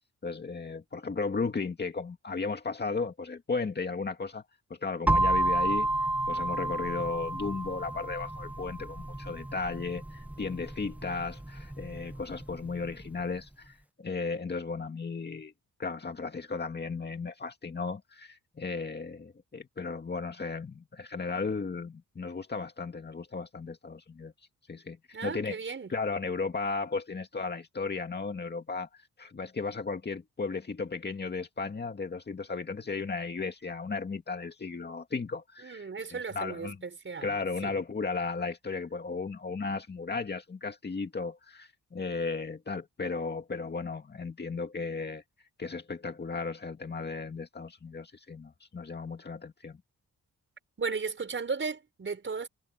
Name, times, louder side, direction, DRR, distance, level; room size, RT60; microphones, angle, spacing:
voice 1, 0.2-4.4 4.7-5.9 6.3-15.5 15.8-24.3 24.7-25.0 25.2-25.6 25.9-36.8 37.2-45.2 45.6-49.8, left 4 dB, 30° left, 2.2 m, -35 dB
sound 1, 5.1-12.9, right 1 dB, 5° right, 0.7 m, -31 dB
voice 2, 25.1-25.9 35.6-37.3 37.6-37.7 50.8-52.5, right 5 dB, 35° right, 5.9 m, -35 dB
wide cardioid pair, 150°, 33 cm